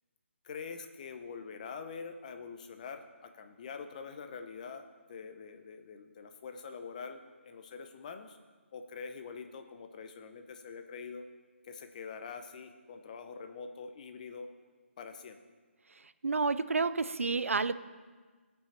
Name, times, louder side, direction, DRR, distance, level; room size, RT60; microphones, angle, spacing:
voice 1, 0.4-8.4 8.7-11.2 11.6-14.5 15.0-15.4, left 5 dB, 35° left, 7 dB, 0.8 m, -45 dB
voice 2, 16.0-17.7, right 4 dB, 85° right, 13 dB, 0.5 m, -30 dB
16.0 x 5.6 x 4.3 m, 1.4 s
figure-of-eight pair, 155°, 7 cm